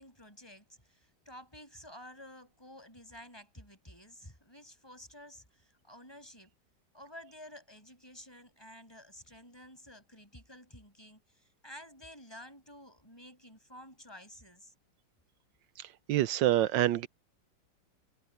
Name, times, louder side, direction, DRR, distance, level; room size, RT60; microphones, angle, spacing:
voice 1, 0.0-6.5 6.9-14.7, left 1 dB, 15° left, 7.2 m, -52 dB
voice 2, 15.8-17.1, right 13 dB, 80° right, 1.3 m, -27 dB
omnidirectional pair, 2.0 m